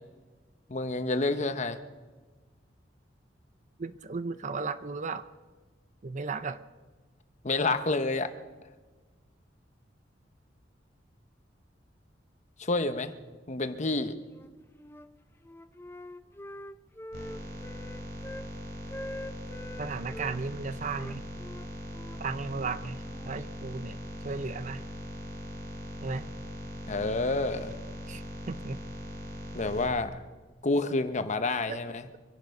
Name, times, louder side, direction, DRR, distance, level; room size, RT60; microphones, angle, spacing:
voice 1, 0.7-1.8 7.4-8.3 12.6-13.1 13.5-14.2 26.9-27.8 29.5-30.2 30.6-32.1, left 2 dB, 40° left, 10 dB, 1.0 m, -29 dB
voice 2, 3.8-5.3 6.0-6.6 19.8-21.2 22.2-24.0 24.2-24.8 26.0-26.3 28.1-28.8 31.7-31.8, right 4 dB, 40° right, 13 dB, 0.6 m, -35 dB
Wind instrument woodwind instrument, 14.3-15.1 15.4-18.5 18.9-20.3 20.9-23.4, left 1 dB, 15° left, 0.5 m, -44 dB
sound 1, 17.1-29.9, equal, 60° right, 3.6 m, -40 dB
24.5 x 11.0 x 5.3 m, 1.3 s
head